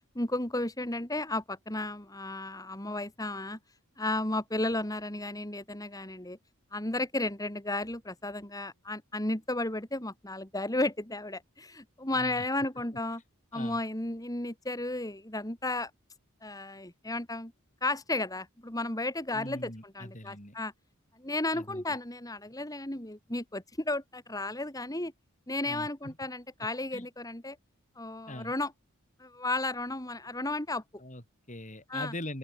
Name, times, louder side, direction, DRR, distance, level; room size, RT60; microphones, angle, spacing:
voice 1, 0.1-3.6 4.0-6.4 6.7-13.2 13.5-15.9 16.4-17.5 17.8-20.7 21.2-25.1 25.5-27.6 28.0-28.7 29.2-30.8 31.9-32.1, left 2 dB, 15° left, 2.8 m, -33 dB
voice 2, 12.1-12.5 13.5-13.8 19.3-20.6 21.5-21.8 25.7-26.1 26.9-27.1 28.3-28.5 31.0-32.4, left 1 dB, 35° left, 8.0 m, -42 dB
open air
head